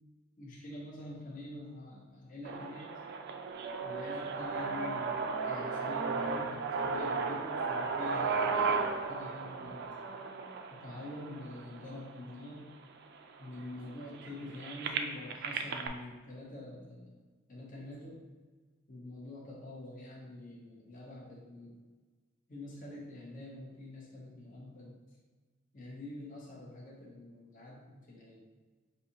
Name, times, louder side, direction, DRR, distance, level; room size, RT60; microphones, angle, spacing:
voice 1, 0.4-2.9 3.8-10.2 10.7-12.8 13.4-17.1 17.5-18.2 18.9-21.8 22.5-25.0 25.7-28.4, left 2 dB, 40° left, -4 dB, 0.7 m, -46 dB
sound 1, 2.4-12.4 13.1-13.2 13.4-15.9, right 4 dB, 55° right, 0.3 m, -35 dB
5.4 x 2.7 x 2.8 m, 1.4 s
head